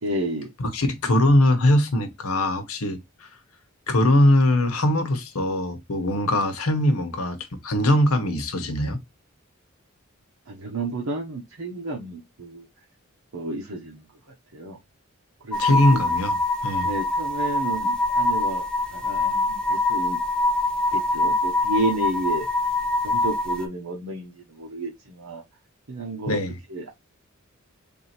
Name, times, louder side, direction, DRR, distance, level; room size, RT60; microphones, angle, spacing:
voice 1, 0.0-0.5 10.5-12.7 13.3-14.0 14.5-14.8 15.4-16.0 16.8-20.2 20.9-22.5 23.0-25.4 25.9-26.4 26.7-26.9, right 1 dB, 80° right, 1.0 m, -31 dB
voice 2, 0.6-3.3 3.9-7.4 7.6-9.0 15.6-16.4 16.6-16.9 26.3-26.6, left 1 dB, 90° left, 1.0 m, -21 dB
sound 1, 15.5-23.7, left 2 dB, 5° left, 0.4 m, -24 dB
3.6 x 2.7 x 4.3 m
head